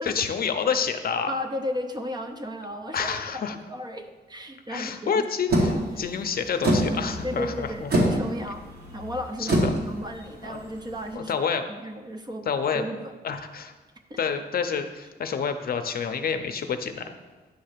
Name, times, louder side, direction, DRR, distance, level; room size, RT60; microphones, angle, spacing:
voice 1, 0.0-1.3 2.9-3.6 4.7-7.9 9.4-9.8 10.4-10.6 11.1-11.6 12.5-12.8 13.2-13.7 14.2-17.1, left 6 dB, 60° left, 7 dB, 0.6 m, -28 dB
voice 2, 1.3-5.3 6.0-6.1 7.2-8.6 8.9-13.1 14.1-14.2, equal, 25° right, 6 dB, 0.5 m, -34 dB
sound 1, 5.5-11.1, right 1 dB, 60° right, 1.7 m, -26 dB
9.6 x 3.3 x 6.6 m, 1.3 s
wide cardioid pair, 170°, 18 cm